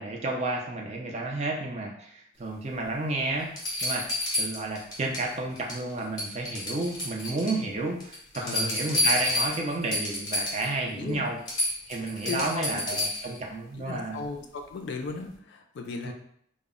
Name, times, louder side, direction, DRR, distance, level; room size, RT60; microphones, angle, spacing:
voice 1, 0.0-3.5 3.8-4.0 4.3-11.4 11.9-14.2 16.0-16.1, right 2 dB, 30° right, 1 dB, 0.4 m, -31 dB
sound 1, 2.8-2.9 3.6-5.3 5.6-5.9 6.2-7.6 8.0-10.7 11.1-11.2 11.5-13.4 15.1-15.2, left 1 dB, 20° left, 0.6 m, -30 dB
voice 2, 8.4-8.8 11.0-11.3 12.3-12.8 13.8-16.1, left 4 dB, 55° left, 5 dB, 0.3 m, -36 dB
2.0 x 2.0 x 3.6 m, 0.67 s
head